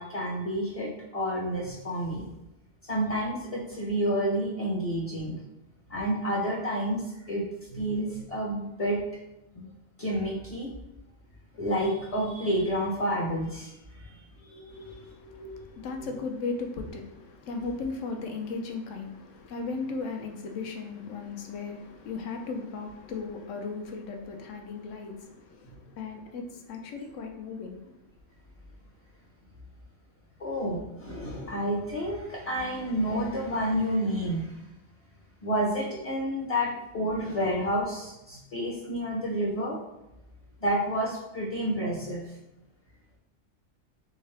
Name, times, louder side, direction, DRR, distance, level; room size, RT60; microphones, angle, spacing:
voice 1, 0.0-2.3 2.9-5.4 5.9-9.0 9.5-9.7 10.0-10.7 11.5-16.1 30.4-34.6 35.4-39.8 40.6-42.2, equal, 35° left, 0.6 m, -30 dB
voice 2, 14.7-28.0, left 4 dB, 75° left, 1.0 m, -37 dB
3.7 x 3.6 x 3.2 m
omnidirectional pair, 1.3 m